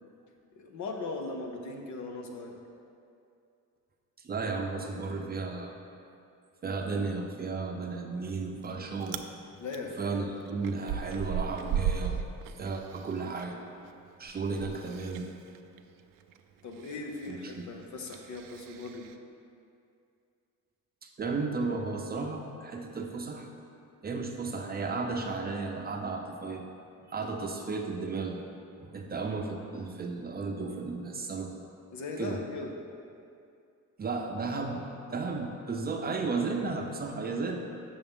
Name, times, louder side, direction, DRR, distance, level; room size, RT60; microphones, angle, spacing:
voice 1, 0.5-2.6 9.6-10.0 16.6-19.1 31.9-32.7, left 3 dB, 60° left, 3 dB, 0.9 m, -39 dB
voice 2, 4.2-5.7 6.6-9.2 10.0-12.2 12.6-13.6 14.2-15.3 17.3-17.7 21.0-23.5 24.0-26.6 27.1-28.4 28.8-31.5 32.2-32.4 34.0-37.6, right 4 dB, 30° right, 2 dB, 0.6 m, -34 dB
Chewing mastication, 8.2-8.7 9.0-9.3 9.7-13.5 13.8-19.2, right 8 dB, 80° right, 0.5 m, -36 dB
7.0 x 7.0 x 3.6 m, 2.5 s
cardioid pair, 120°, 33 cm